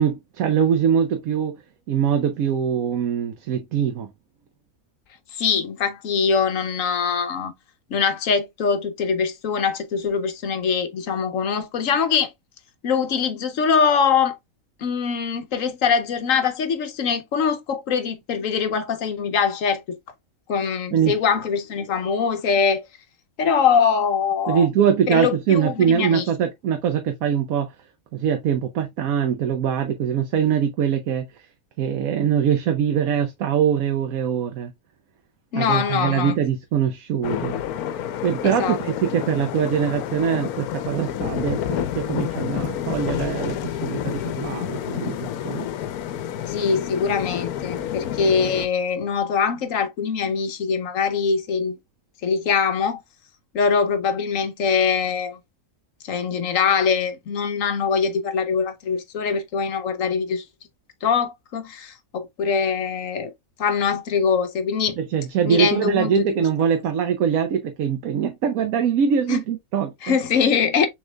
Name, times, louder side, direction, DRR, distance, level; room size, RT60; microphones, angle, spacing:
voice 1, 0.0-1.6 1.9-4.1 20.9-21.2 24.5-27.7 28.1-31.3 31.8-34.7 35.5-37.6 38.2-45.7 65.0-70.1, right 8 dB, 70° right, 1.1 m, -23 dB
voice 2, 5.3-7.5 7.9-12.3 12.8-14.4 14.8-20.0 20.5-22.9 23.4-24.7 25.1-26.2 35.5-36.4 38.4-38.8 46.5-51.7 52.2-53.0 53.5-55.4 56.0-60.4 61.0-63.3 63.6-65.0 65.4-66.2 69.3-69.4 70.0-70.9, left 6 dB, 65° left, 1.1 m, -23 dB
sound 1, 37.2-48.7, left 10 dB, 85° left, 1.1 m, -29 dB
6.3 x 3.6 x 2.2 m
omnidirectional pair, 1.6 m